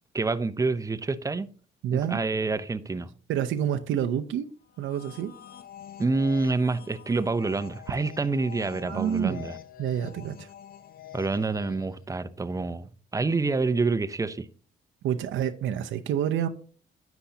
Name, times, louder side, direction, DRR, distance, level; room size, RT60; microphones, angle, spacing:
voice 1, 0.1-1.5 1.9-3.1 6.0-9.6 11.1-14.5, right 3 dB, 15° right, 0.5 m, -27 dB
voice 2, 1.8-2.2 3.3-4.5 4.8-5.3 8.8-9.4 9.8-10.5 15.0-16.5, right 10 dB, 80° right, 0.6 m, -28 dB
sound 1, 4.7-12.0, left 10 dB, 50° left, 0.6 m, -46 dB
9.9 x 7.0 x 2.8 m
cardioid pair, 90°, 20 cm